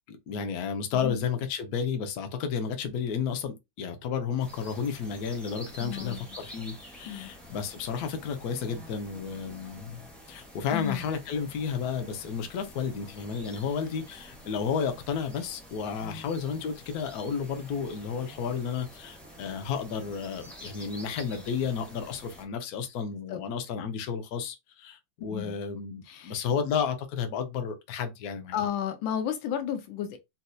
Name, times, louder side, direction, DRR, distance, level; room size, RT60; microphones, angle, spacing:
voice 1, 0.1-28.6, left 6 dB, 65° left, 1.1 m, -32 dB
sound 1, 4.4-22.4, equal, ahead, 0.7 m, -48 dB
voice 2, 5.8-6.2 7.1-7.3 10.7-11.0 16.0-16.3 23.3-23.4 25.3-25.5 26.1-26.4 28.5-30.2, left 9 dB, 80° left, 1.3 m, -33 dB
4.2 x 2.6 x 2.2 m
omnidirectional pair, 2.1 m